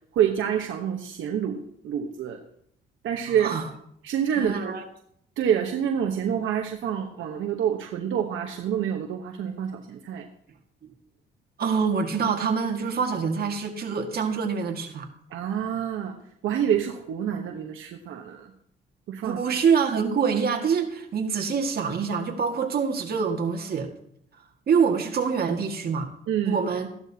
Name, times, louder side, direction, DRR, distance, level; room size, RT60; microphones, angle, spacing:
voice 1, 0.1-2.4 3.0-3.5 4.0-4.7 5.4-10.3 15.3-16.2 16.4-18.5 19.1-19.4 26.3-26.6, right 9 dB, 80° right, 2 dB, 1.1 m, -27 dB
voice 2, 3.3-3.7 4.4-4.8 11.6-15.1 19.2-23.9 24.7-26.1 26.5-26.9, right 6 dB, 50° right, 3 dB, 1.9 m, -25 dB
14.5 x 11.5 x 2.8 m, 0.68 s
cardioid pair, 90°, 20 cm